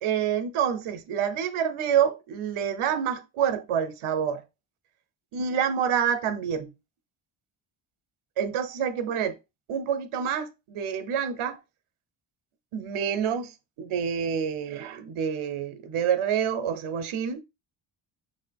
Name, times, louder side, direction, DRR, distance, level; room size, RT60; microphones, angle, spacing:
voice 1, 0.0-4.4 5.3-6.7 8.4-9.4 9.7-11.6 12.7-13.5 13.8-17.4, right 8 dB, 75° right, 0.8 m, -27 dB
5.8 x 2.6 x 3.4 m
cardioid pair, 80°, 50 cm